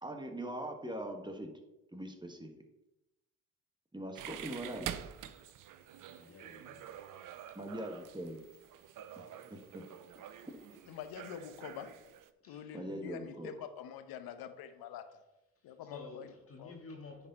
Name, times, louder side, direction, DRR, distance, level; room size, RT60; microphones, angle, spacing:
voice 1, 0.0-1.5 1.9-2.5 3.9-5.0 7.5-8.4 9.2-9.3 9.5-9.9 10.5-10.6 12.7-13.5, right 1 dB, 10° right, 4 dB, 1.5 m, -42 dB
sound 1, 4.2-12.3, right 10 dB, 55° right, 0.7 m, -47 dB
voice 2, 6.1-7.4 12.4-12.9 15.6-17.3, left 3 dB, 35° left, 1 dB, 1.8 m, -52 dB
voice 3, 10.9-11.9 12.5-15.2 15.6-16.3 16.6-16.8, left 9 dB, 65° left, 10 dB, 1.0 m, -46 dB
9.9 x 4.5 x 4.2 m, 0.94 s
hypercardioid pair, 50°, 39 cm